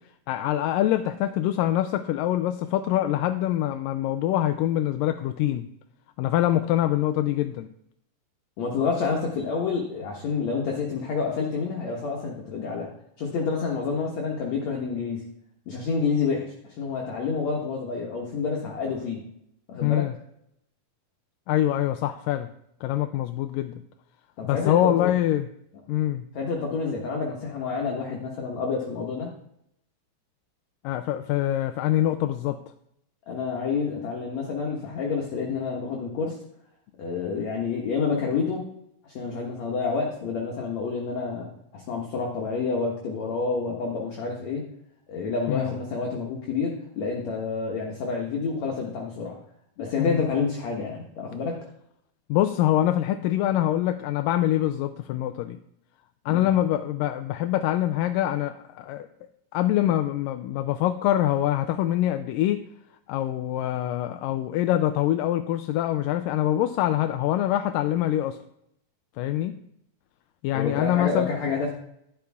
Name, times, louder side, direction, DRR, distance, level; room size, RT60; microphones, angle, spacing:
voice 1, 0.3-5.7 6.2-7.7 19.8-20.1 21.5-22.5 22.8-23.8 24.4-25.5 25.9-26.3 30.8-32.6 45.5-45.7 50.0-50.3 52.3-55.6 56.3-59.1 59.5-62.6 63.1-68.4 69.2-69.5 70.4-71.3, left 13 dB, 80° left, 8 dB, 2.2 m, -24 dB
voice 2, 8.6-12.9 13.2-15.2 15.7-19.2 19.7-20.0 24.4-25.1 26.3-29.3 33.3-36.4 37.0-38.6 39.0-44.6 45.1-49.4 49.8-51.5 56.3-56.5 70.5-71.7, left 5 dB, 60° left, -1 dB, 2.4 m, -28 dB
11.5 x 11.5 x 3.6 m, 0.74 s
omnidirectional pair, 4.0 m